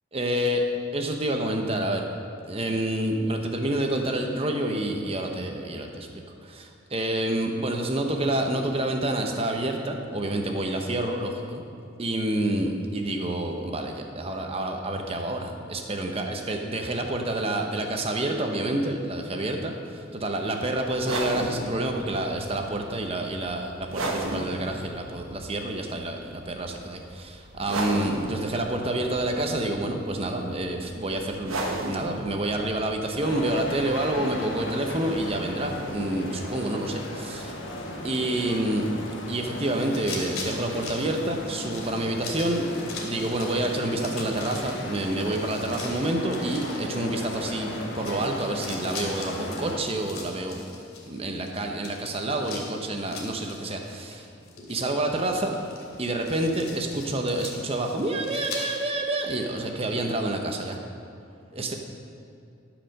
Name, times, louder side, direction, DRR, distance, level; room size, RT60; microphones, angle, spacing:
voice 1, 0.1-0.6 0.9-2.1 2.5-6.1 6.4-11.6 12.0-31.6 31.9-37.5 38.0-38.9 39.3-42.7 43.0-50.7 51.1-54.3 54.7-55.5 56.0-60.8 61.5-61.8, right 1 dB, 30° right, 3 dB, 0.8 m, -28 dB
sound 1, 20.9-36.3, right 1 dB, 80° right, 1.2 m, -36 dB
sound 2, 33.2-49.8, left 1 dB, 60° left, 1.4 m, -36 dB
sound 3, 39.5-58.9, left 4 dB, 80° left, 2.7 m, -42 dB
12.5 x 5.0 x 6.5 m, 2.5 s
head